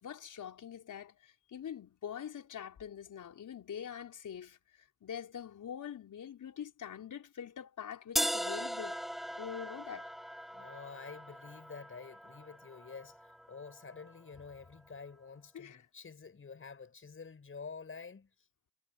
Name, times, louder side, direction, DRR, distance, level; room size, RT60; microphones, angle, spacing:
voice 1, 0.0-9.0 9.4-10.1 15.5-15.9, left 8 dB, 50° left, 4.9 m, -44 dB
sound 1, 8.2-14.1, equal, ahead, 1.0 m, -39 dB
voice 2, 10.5-18.3, left 5 dB, 35° left, 6.0 m, -49 dB
hypercardioid pair, 60°, 39 cm